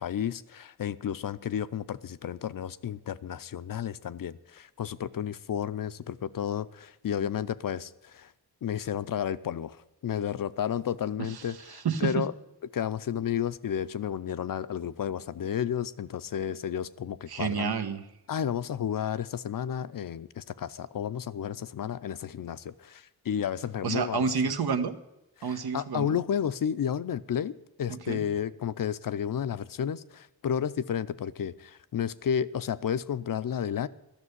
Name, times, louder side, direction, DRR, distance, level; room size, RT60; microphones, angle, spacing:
voice 1, 0.0-8.3 8.6-9.8 10.0-12.3 12.7-17.7 18.3-24.3 25.4-33.9, left 9 dB, 60° left, 15 dB, 0.6 m, -32 dB
voice 2, 11.2-12.2 17.3-18.0 23.8-25.0 25.4-26.2 27.9-28.3, right 6 dB, 75° right, 9 dB, 1.1 m, -30 dB
12.5 x 6.7 x 9.6 m, 0.93 s
wide cardioid pair, 130°, 39 cm